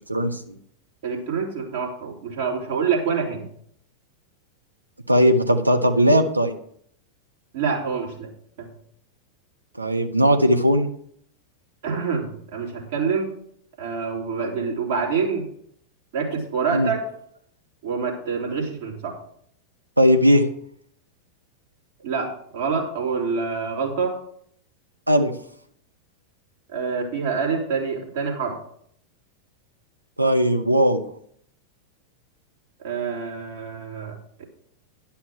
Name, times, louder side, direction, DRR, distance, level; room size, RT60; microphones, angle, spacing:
voice 1, 0.1-0.6 5.1-6.5 9.8-10.9 16.7-16.9 20.0-20.4 25.1-25.3 30.2-31.0, equal, 85° right, 6 dB, 0.9 m, -18 dB
voice 2, 1.0-3.4 7.5-8.3 8.6-8.7 11.8-13.3 13.8-15.5 16.1-17.0 17.8-19.2 22.0-24.1 26.7-28.6 32.8-34.1 34.4-34.5, right 5 dB, 55° right, -1 dB, 2.8 m, -26 dB
11.0 x 5.8 x 6.2 m, 0.66 s
figure-of-eight pair, 90°, 0 cm